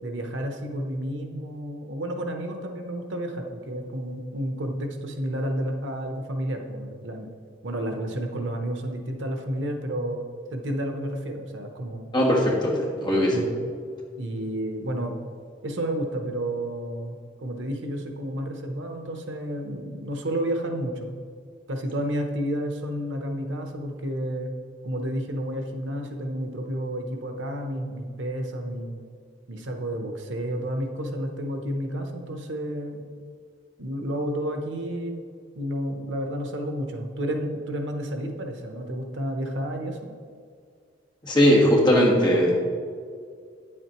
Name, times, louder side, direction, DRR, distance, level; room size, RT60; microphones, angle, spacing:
voice 1, 0.0-7.3 7.6-10.2 10.5-12.1 13.1-13.7 14.2-15.2 15.6-21.1 21.7-24.5 24.8-29.0 29.5-33.1 33.8-35.2 35.5-40.1, right 1 dB, 90° right, 4 dB, 0.9 m, -31 dB
voice 2, 12.1-13.4 41.2-42.6, equal, 25° left, -4 dB, 1.5 m, -19 dB
9.2 x 7.7 x 3.0 m, 2.2 s
head